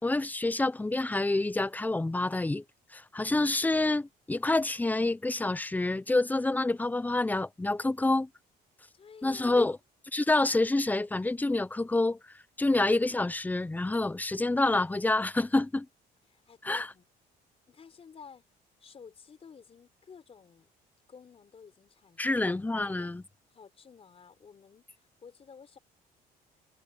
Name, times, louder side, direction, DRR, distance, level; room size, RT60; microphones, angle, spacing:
voice 1, 0.0-2.6 2.9-8.3 9.2-9.8 10.1-12.2 12.6-15.9 16.6-16.9 22.2-23.2, left 2 dB, 10° left, 0.8 m, -27 dB
voice 2, 8.9-9.8 16.3-17.1 17.7-18.4 18.8-20.7 21.1-22.6 22.9-23.1 23.5-25.8, left 6 dB, 35° left, 4.4 m, -53 dB
cardioid pair, 110°, 17 cm